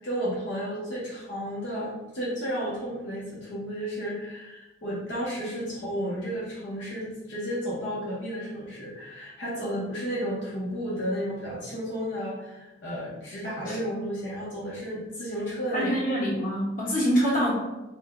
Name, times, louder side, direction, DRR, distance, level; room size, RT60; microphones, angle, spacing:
voice 1, 0.0-15.9, equal, 65° left, -7 dB, 0.9 m, -32 dB
voice 2, 15.7-17.5, equal, 45° left, -6 dB, 1.2 m, -25 dB
4.3 x 2.2 x 3.7 m, 1.0 s
head